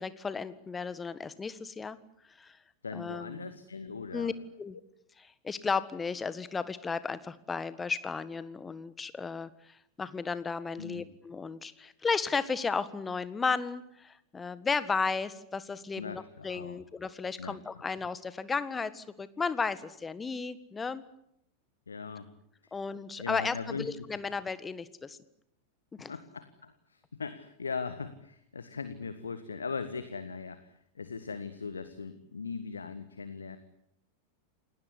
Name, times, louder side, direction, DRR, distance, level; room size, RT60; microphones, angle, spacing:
voice 1, 0.0-2.0 2.4-2.6 2.9-3.5 4.1-4.3 4.6-4.8 5.2-21.0 22.7-25.2 26.0-26.1, left 5 dB, 15° left, 15 dB, 1.6 m, -34 dB
voice 2, 2.8-4.3 10.8-11.0 16.0-16.8 17.4-17.6 21.9-22.3 22.6-22.7 23.2-23.9 26.1-33.6, left 5 dB, 75° left, 11 dB, 1.6 m, -39 dB
28.5 x 19.0 x 9.9 m, 0.76 s
figure-of-eight pair, 90°, 0 cm